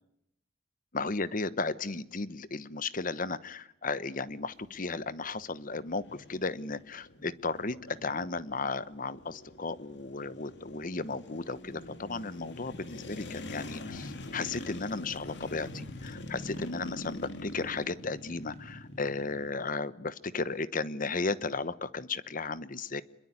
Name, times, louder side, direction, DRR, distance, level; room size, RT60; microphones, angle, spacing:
voice 1, 0.9-23.0, left 3 dB, 45° left, 16 dB, 1.1 m, -35 dB
sound 1, 4.2-19.5, left 1 dB, 60° left, 2.8 m, -44 dB
27.5 x 22.0 x 9.7 m, 0.80 s
head